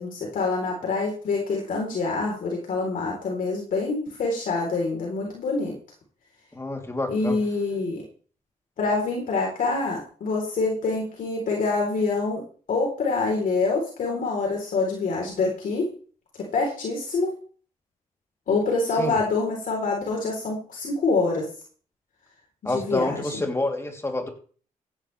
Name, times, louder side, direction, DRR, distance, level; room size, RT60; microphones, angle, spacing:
voice 1, 0.0-5.7 7.1-8.0 8.8-12.4 12.7-15.9 16.5-17.3 18.5-21.5 22.6-23.4, left 3 dB, 75° left, -1 dB, 4.2 m, -26 dB
voice 2, 6.5-7.4 19.0-19.2 22.7-24.3, left 2 dB, 20° left, 2 dB, 3.4 m, -28 dB
15.0 x 11.0 x 3.5 m, 0.41 s
cardioid pair, 90°, 14 cm